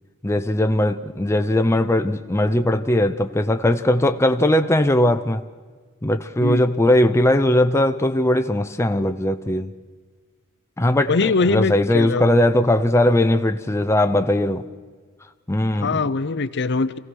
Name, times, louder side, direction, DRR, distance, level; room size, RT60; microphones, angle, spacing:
voice 1, 0.2-5.4 6.0-9.7 10.8-14.7 15.5-16.0, left 1 dB, 10° left, 0.6 m, -19 dB
voice 2, 6.4-6.7 11.1-12.3 15.7-17.0, left 4 dB, 55° left, 0.7 m, -22 dB
26.0 x 16.5 x 6.4 m
head